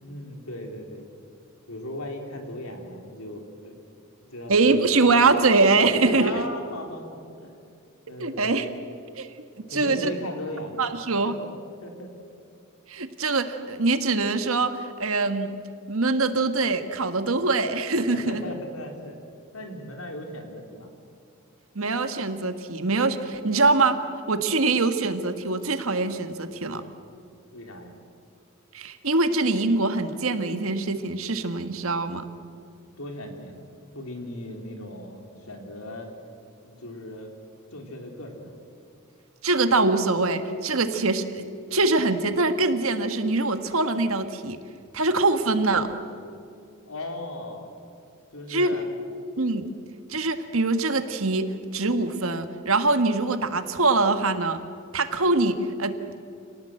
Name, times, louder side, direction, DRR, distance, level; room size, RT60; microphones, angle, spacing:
voice 1, 0.0-1.1 1.7-3.7 4.3-5.2 6.0-7.6 8.1-8.6 9.7-10.7 11.2-12.1 18.1-19.2 19.5-20.9 27.5-27.9 33.0-33.6 33.9-36.1 36.6-37.3 37.7-38.5 46.9-47.7 48.3-48.9, left 1 dB, 85° left, 3 dB, 3.9 m, -37 dB
voice 2, 4.5-6.4 8.2-8.7 9.2-9.3 9.7-10.1 10.8-11.3 12.9-14.7 15.0-15.5 15.9-18.4 21.7-24.0 24.3-26.8 28.7-32.3 39.4-44.6 44.9-45.9 48.5-48.7 49.4-49.7 50.1-54.6 54.9-56.2, right 3 dB, 75° right, 8 dB, 1.6 m, -23 dB
28.0 x 18.5 x 7.7 m, 2.5 s
head